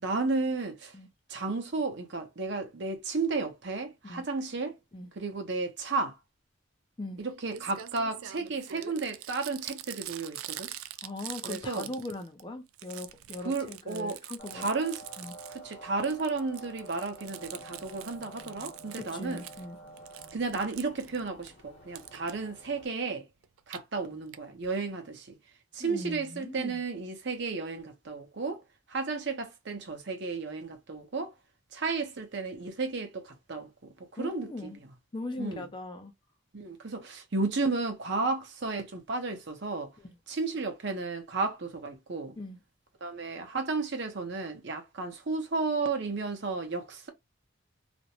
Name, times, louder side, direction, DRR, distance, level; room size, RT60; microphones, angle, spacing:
voice 1, 0.0-0.9 1.3-4.8 5.1-6.2 7.2-10.7 11.4-11.9 13.4-14.2 14.5-15.0 15.5-19.4 20.3-23.3 23.7-25.4 25.7-28.6 28.9-31.3 31.7-33.7 34.1-34.7 35.4-35.7 36.5-39.9 40.3-42.4 43.0-47.1, right 3 dB, 55° right, 0.7 m, -33 dB
Crumpling crinkling, 7.2-7.3 7.5-12.4 12.7-15.7 16.0-19.6 20.0-21.5 21.9-22.3 23.4-23.8 24.3-24.4 24.6-24.7 24.9-25.0, right 12 dB, 80° right, 0.3 m, -44 dB
voice 2, 11.0-14.7 15.2-15.3 18.9-19.8 25.8-26.8 34.2-34.8 35.1-36.1 40.0-40.1 42.4-42.6, left 2 dB, 20° left, 0.4 m, -40 dB
sound 1, 14.4-22.9, right 1 dB, 50° left, 0.9 m, -49 dB
2.5 x 2.1 x 2.8 m
head